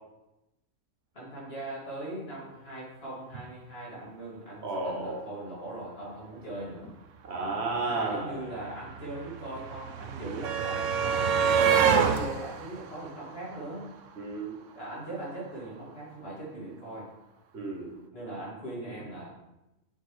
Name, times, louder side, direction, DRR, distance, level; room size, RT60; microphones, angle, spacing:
voice 1, 1.1-6.9 7.8-13.9 14.7-17.1 18.1-19.3, right 1 dB, 45° left, -6 dB, 2.9 m, -40 dB
voice 2, 4.6-5.2 7.2-8.4 14.2-14.5 17.5-17.9, right 3 dB, 55° right, 1 dB, 1.3 m, -32 dB
sound 1, 7.6-7.7 7.9-14.1 15.3-15.4 15.7-15.8, right 7 dB, 70° right, 1.0 m, -28 dB
8.3 x 6.7 x 3.3 m, 0.96 s
omnidirectional pair, 1.4 m